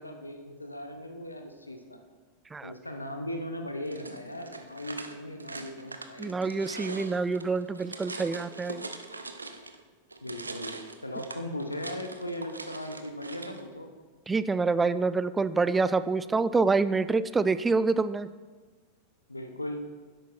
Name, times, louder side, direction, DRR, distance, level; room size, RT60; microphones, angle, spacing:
voice 1, 0.0-2.0 2.6-6.3 10.2-10.8 11.0-13.9 19.3-19.8, left 1 dB, 90° left, 5 dB, 1.0 m, -38 dB
sound 1, 3.9-9.8 10.1-13.6, right 3 dB, 85° right, 0.6 m, -42 dB
voice 2, 6.2-8.8 14.3-18.3, right 4 dB, 15° right, 14 dB, 0.3 m, -26 dB
10.5 x 8.1 x 4.3 m, 1.4 s
figure-of-eight pair, 90°, 0 cm